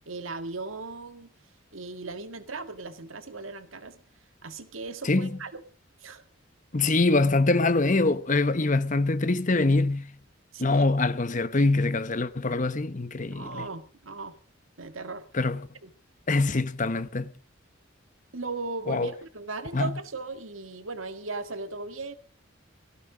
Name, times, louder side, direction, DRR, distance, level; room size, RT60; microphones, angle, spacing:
voice 1, 0.1-1.3 1.7-4.0 4.4-5.6 6.0-6.2 10.5-10.9 13.3-14.4 14.8-15.3 15.8-15.9 18.3-22.2, right 3 dB, 80° right, 1.9 m, -37 dB
voice 2, 6.7-10.1 10.6-13.7 15.3-15.6 16.3-17.3 18.9-19.1 19.7-19.9, left 3 dB, 40° left, 1.0 m, -24 dB
18.0 x 15.5 x 5.1 m
head